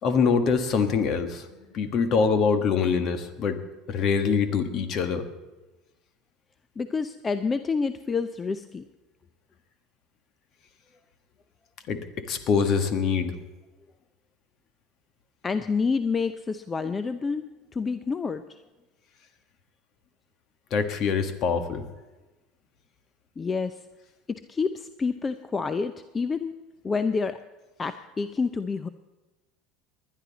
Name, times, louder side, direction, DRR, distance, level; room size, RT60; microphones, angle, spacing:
voice 1, 0.0-1.5 1.7-3.6 3.9-5.3 11.9-13.3 20.7-21.8, left 5 dB, 50° left, 8 dB, 1.5 m, -24 dB
voice 2, 6.8-8.8 15.4-18.4 23.4-23.8 24.3-26.6 26.8-27.4 27.8-28.9, left 4 dB, 25° left, 11 dB, 0.6 m, -28 dB
20.0 x 11.0 x 4.1 m, 1.1 s
hypercardioid pair, 85°, 0 cm